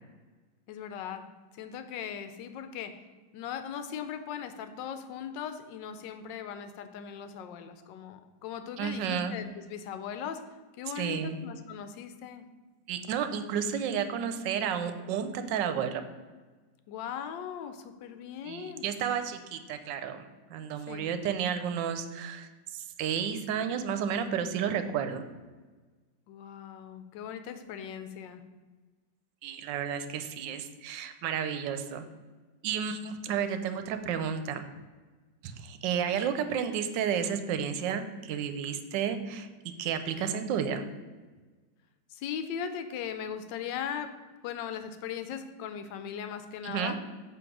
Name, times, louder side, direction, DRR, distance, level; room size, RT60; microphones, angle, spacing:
voice 1, 0.7-2.9 3.3-10.4 10.7-12.5 16.9-18.9 20.9-21.1 26.3-28.4 42.1-44.2 44.4-47.0, left 8 dB, 85° left, 10 dB, 1.3 m, -39 dB
voice 2, 8.8-9.3 11.0-11.4 12.9-16.0 18.4-20.2 20.5-25.2 29.4-32.0 32.6-34.6 35.4-39.5 39.8-40.8 46.6-47.0, right 8 dB, 90° right, 9 dB, 1.3 m, -32 dB
7.1 x 3.2 x 6.0 m, 1.3 s
omnidirectional pair, 1.9 m